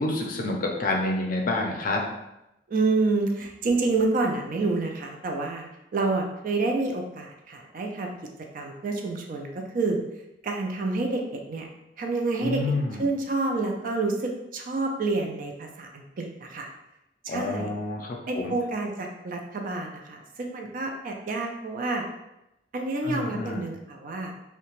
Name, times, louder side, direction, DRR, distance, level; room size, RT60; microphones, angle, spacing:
voice 1, 0.0-2.0 12.4-13.1 17.3-18.5 23.0-23.6, left 2 dB, 50° left, 0 dB, 0.5 m, -28 dB
voice 2, 2.7-8.1 8.5-10.0 10.4-11.7 12.0-12.6 13.0-16.7 17.2-17.7 18.3-22.0 22.7-24.3, right 3 dB, 50° right, 2 dB, 0.4 m, -28 dB
2.8 x 2.1 x 2.9 m, 0.89 s
head